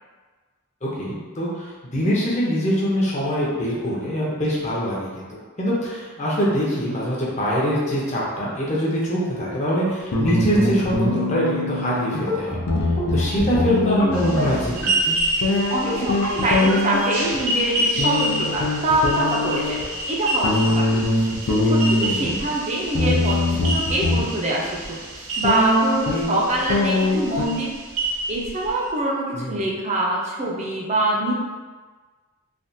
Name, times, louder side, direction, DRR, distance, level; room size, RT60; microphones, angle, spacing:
voice 1, 0.8-12.6 13.1-14.9 22.1-22.4 29.3-29.6, equal, 30° left, -6 dB, 0.7 m, -24 dB
sound 1, 9.2-9.5 10.1-12.2 12.5-14.8 15.4-17.4 18.0-19.8 20.4-22.4 22.9-24.2 24.8-24.9 25.4-27.5, left 2 dB, 70° left, 0.5 m, -23 dB
sound 2, 10.3-10.8 11.1-11.4 12.1-12.6 13.0-13.2 14.0-14.4 14.8-15.2 15.9-16.3 16.7-17.0, equal, 55° left, 0.9 m, -28 dB
sound 3, 14.1-28.9, right 1 dB, 90° right, 0.7 m, -28 dB
voice 2, 15.7-19.8 20.1-21.0 21.6-25.0 25.4-27.8 28.3-31.3, right 1 dB, 30° right, -3 dB, 0.5 m, -24 dB
3.3 x 2.3 x 2.7 m, 1.4 s
head